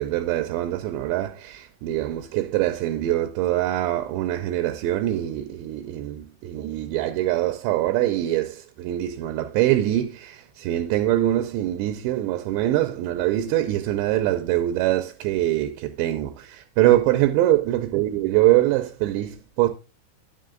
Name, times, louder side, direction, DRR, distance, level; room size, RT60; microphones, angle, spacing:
voice 1, 0.0-19.7, right 14 dB, 80° right, 2.8 m, -23 dB
10.0 x 6.5 x 3.8 m
omnidirectional pair, 5.3 m